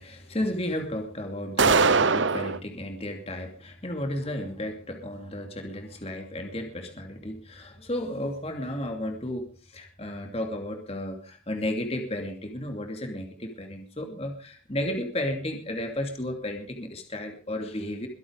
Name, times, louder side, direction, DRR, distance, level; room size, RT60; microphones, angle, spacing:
voice 1, 0.0-18.1, left 1 dB, 30° left, 4 dB, 2.7 m, -33 dB
sound 1, 1.6-2.6, right 4 dB, 75° right, 0.9 m, -21 dB
22.5 x 8.6 x 5.2 m, 0.37 s
head